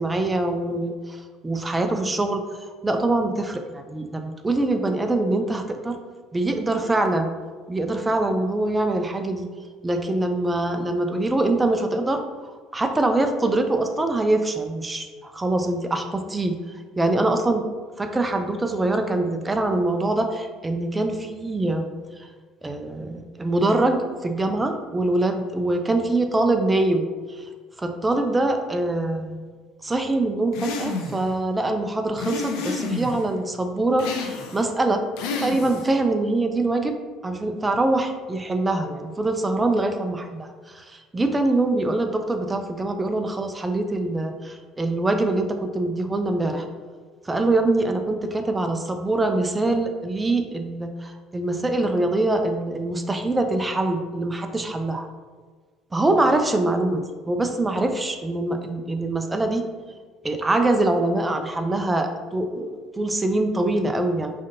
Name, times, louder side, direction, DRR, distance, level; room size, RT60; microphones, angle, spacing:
voice 1, 0.0-2.4 2.8-6.0 6.3-7.3 7.7-9.5 9.8-12.2 12.7-16.6 17.0-17.6 18.0-21.9 22.2-22.3 22.6-27.5 27.8-29.6 29.8-35.0 35.4-37.0 37.2-46.7 47.3-55.1 55.9-59.6 60.2-64.3, right 2 dB, 15° right, 6 dB, 0.3 m, -24 dB
sound 1, 30.5-31.3 32.2-33.2 34.0-34.7 35.2-36.0, left 3 dB, 80° left, 0.5 m, -30 dB
4.9 x 2.7 x 2.5 m, 1.5 s
cardioid pair, 140°, 0 cm